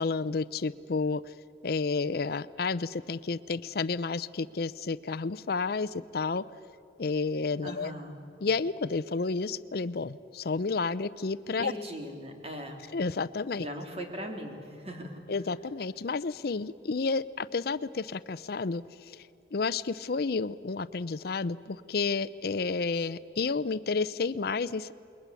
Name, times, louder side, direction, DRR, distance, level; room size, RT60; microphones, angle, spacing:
voice 1, 0.0-1.3 1.6-6.4 7.0-7.9 8.4-11.7 12.9-13.7 15.3-24.9, left 4 dB, 60° left, 15 dB, 0.6 m, -31 dB
voice 2, 7.6-8.2 11.6-12.8 13.6-15.2, equal, 35° right, 3 dB, 3.6 m, -39 dB
28.5 x 22.0 x 8.3 m, 2.6 s
head